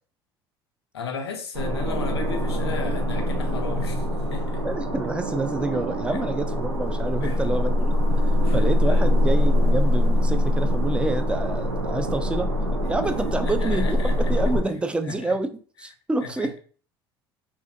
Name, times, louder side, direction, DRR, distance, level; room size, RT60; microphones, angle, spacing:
voice 1, 0.9-4.6 6.1-6.2 7.2-7.4 8.4-8.6 8.9-9.0 13.4-14.1 15.0-15.3 16.2-16.5, left 6 dB, 85° left, 0.4 m, -34 dB
sound 1, 1.5-14.6, left 1 dB, 90° right, 0.6 m, -23 dB
voice 2, 4.6-8.2 8.5-12.5 12.9-15.5 15.8-16.6, right 2 dB, 10° right, 0.3 m, -28 dB
2.5 x 2.4 x 2.6 m
hypercardioid pair, 65°, 13 cm